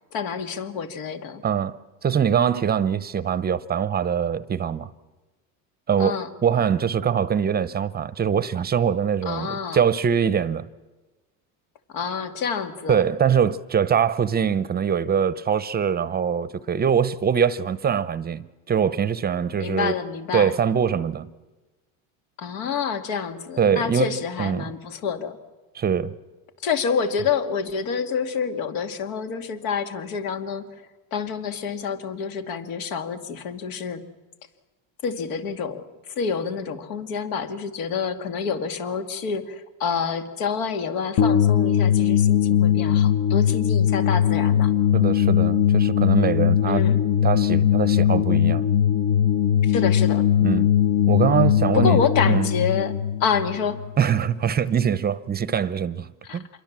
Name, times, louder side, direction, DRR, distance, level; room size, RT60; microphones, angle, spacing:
voice 1, 0.1-1.4 6.0-6.3 9.3-9.8 11.9-13.0 19.6-20.5 22.4-25.4 26.6-34.0 35.0-44.7 46.7-47.0 49.6-50.3 51.7-52.9 53.2-53.8 56.2-56.4, left 6 dB, 75° left, 2.4 m, -28 dB
voice 2, 1.4-4.9 5.9-10.7 12.9-19.9 20.3-21.3 23.6-24.7 25.7-26.1 44.9-46.8 47.2-48.7 50.4-50.7 51.1-52.0 52.3-52.5 54.0-56.1 56.3-56.5, right 7 dB, 20° right, 0.7 m, -23 dB
sound 1, 41.2-54.3, left 9 dB, 50° left, 1.2 m, -20 dB
26.5 x 22.5 x 7.5 m
supercardioid pair, 120°, 43 cm